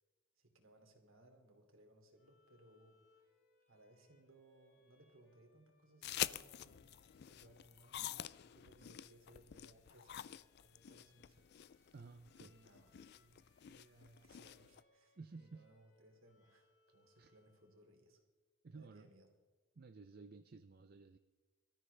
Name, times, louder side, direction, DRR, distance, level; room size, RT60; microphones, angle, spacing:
voice 1, 0.4-3.3 3.7-11.9 12.4-18.2 18.7-19.3, right 1 dB, 65° right, 3 dB, 2.7 m, -66 dB
Bowed string instrument, 2.1-17.9, left 2 dB, 75° left, 5.8 m, -76 dB
sound 1, 6.0-14.8, left 12 dB, 50° left, 0.3 m, -47 dB
voice 2, 11.9-12.7 15.2-15.7 17.2-17.3 18.6-19.1 19.8-21.2, right 4 dB, 45° right, 8 dB, 0.5 m, -55 dB
23.0 x 13.5 x 3.3 m, 1.3 s
head